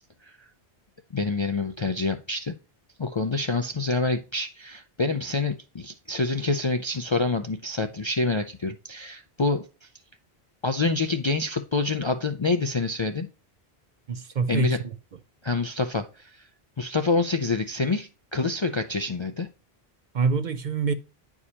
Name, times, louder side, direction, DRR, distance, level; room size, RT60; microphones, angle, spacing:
voice 1, 1.1-2.5 3.0-9.9 10.6-13.3 14.5-14.8 15.4-16.5 16.8-19.5, left 3 dB, 40° left, 0.4 m, -27 dB
voice 2, 14.1-14.9 20.1-20.9, right 5 dB, 55° right, 0.7 m, -25 dB
9.7 x 4.7 x 2.8 m
omnidirectional pair, 1.1 m